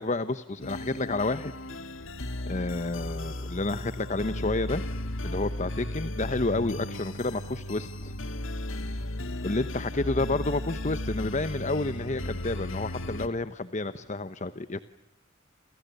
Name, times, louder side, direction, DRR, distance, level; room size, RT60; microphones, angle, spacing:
voice 1, 0.0-1.5 2.5-4.8 5.2-8.1 9.4-14.8, left 2 dB, 40° left, 12 dB, 1.0 m, -30 dB
sound 1, 0.6-13.3, left 1 dB, 90° left, 2.2 m, -35 dB
29.0 x 29.0 x 6.9 m, 0.84 s
head